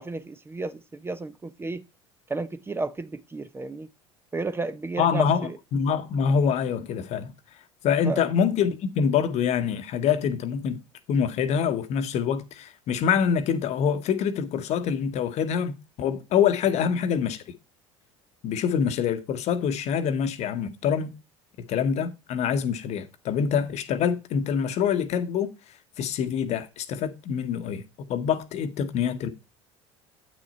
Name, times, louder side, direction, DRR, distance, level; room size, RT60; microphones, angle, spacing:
voice 1, 0.0-1.8 2.3-3.9 4.3-5.6 8.0-8.3 16.7-16.8, right 3 dB, 15° right, 0.6 m, -33 dB
voice 2, 5.0-7.3 7.8-10.8 11.1-17.4 18.4-21.1 21.6-25.5 26.0-29.3, left 7 dB, 50° left, 1.0 m, -25 dB
8.6 x 6.3 x 4.1 m
figure-of-eight pair, 65°, 15 cm